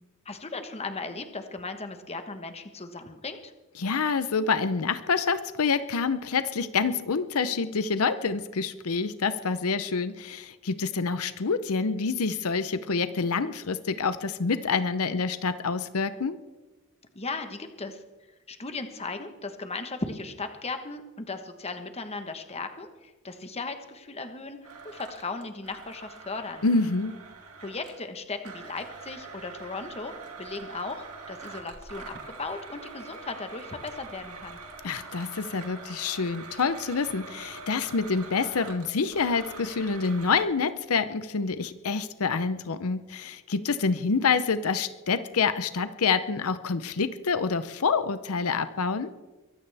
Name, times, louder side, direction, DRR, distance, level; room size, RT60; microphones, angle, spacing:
voice 1, 0.2-3.5 17.1-18.0 18.5-24.6 24.8-26.6 27.6-30.1 30.4-34.6, left 3 dB, 30° left, 7 dB, 1.2 m, -37 dB
voice 2, 3.8-16.4 26.6-27.2 34.8-49.1, left 5 dB, 80° left, 12 dB, 0.7 m, -27 dB
Domestic sounds home sounds, 24.6-28.0 28.4-40.5, right 4 dB, 90° right, 2.3 m, -44 dB
23.0 x 15.5 x 3.5 m, 1.1 s
head